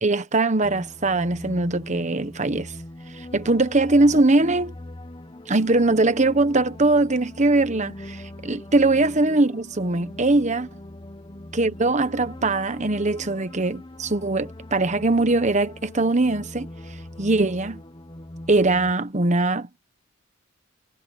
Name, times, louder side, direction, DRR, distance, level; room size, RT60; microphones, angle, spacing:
voice 1, 0.0-2.7 3.2-4.7 5.5-10.7 11.5-16.7 17.2-17.8 18.5-19.8, right 2 dB, 35° right, 1.2 m, -21 dB
sound 1, 0.6-18.9, left 1 dB, 25° left, 1.1 m, -41 dB
head